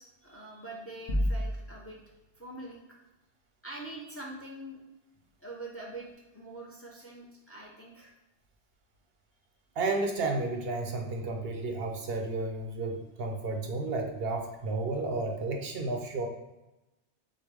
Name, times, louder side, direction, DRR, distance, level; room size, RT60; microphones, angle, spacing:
voice 1, 0.0-2.0 2.4-2.8 3.6-4.8 5.4-6.1 6.3-8.1, right 2 dB, 15° left, -1 dB, 0.6 m, -44 dB
sound 1, 1.1-2.0, equal, 40° left, 1.0 m, -30 dB
voice 2, 9.8-16.3, right 3 dB, 65° right, 3 dB, 0.8 m, -32 dB
6.5 x 2.2 x 3.3 m, 1.0 s
omnidirectional pair, 1.1 m